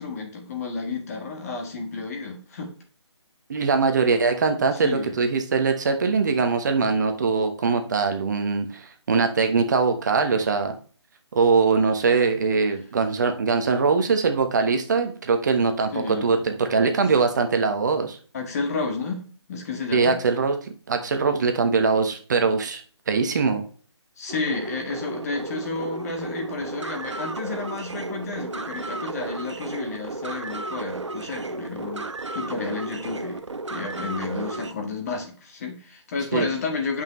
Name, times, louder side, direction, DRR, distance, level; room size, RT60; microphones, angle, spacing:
voice 1, 0.0-2.7 4.7-5.1 15.9-16.3 18.3-20.1 24.2-33.4 33.7-37.0, left 4 dB, 35° left, 2 dB, 1.9 m, -31 dB
voice 2, 3.5-10.7 11.3-18.2 19.9-22.8 23.1-23.6 36.3-36.5, right 4 dB, 40° right, 6 dB, 1.1 m, -22 dB
sound 1, 24.3-34.7, right 3 dB, 80° right, 0.9 m, -33 dB
8.7 x 5.6 x 3.2 m, 0.41 s
figure-of-eight pair, 150°, 15 cm